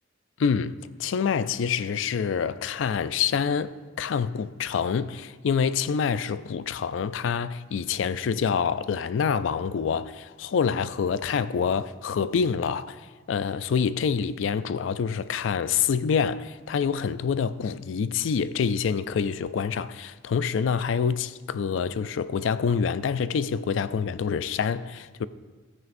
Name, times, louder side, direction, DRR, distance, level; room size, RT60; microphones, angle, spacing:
voice 1, 0.4-25.3, left 6 dB, 75° left, 0.4 m, -26 dB
13.5 x 9.2 x 2.6 m
head